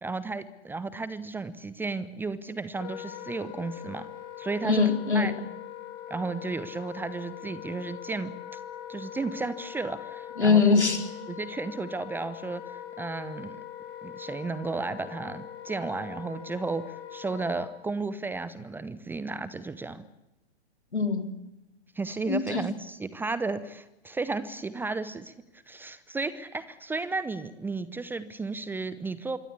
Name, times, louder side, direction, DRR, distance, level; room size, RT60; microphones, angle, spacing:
voice 1, 0.0-4.1 4.4-4.8 5.1-5.3 6.1-8.6 8.9-10.6 11.3-12.6 13.0-13.6 14.0-20.0 21.9-29.4, right 3 dB, 5° right, 16 dB, 0.8 m, -33 dB
Wind instrument woodwind instrument, 2.7-17.7, left 11 dB, 35° left, 4.0 m, -42 dB
voice 2, 4.6-5.3 10.4-11.0 20.9-21.4 22.3-22.7, left 5 dB, 80° left, 6 dB, 4.0 m, -22 dB
26.5 x 22.5 x 8.5 m, 0.96 s
figure-of-eight pair, 110°, 33 cm